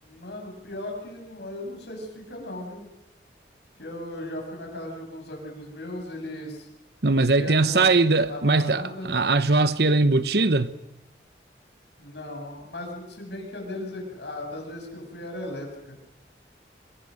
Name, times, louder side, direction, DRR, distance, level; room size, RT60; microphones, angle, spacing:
voice 1, 0.0-2.9 3.8-6.7 7.4-9.1 12.0-16.0, left 1 dB, 75° left, 7.8 m, -37 dB
voice 2, 7.0-10.7, right 3 dB, 65° right, 1.0 m, -21 dB
27.0 x 22.5 x 6.6 m
head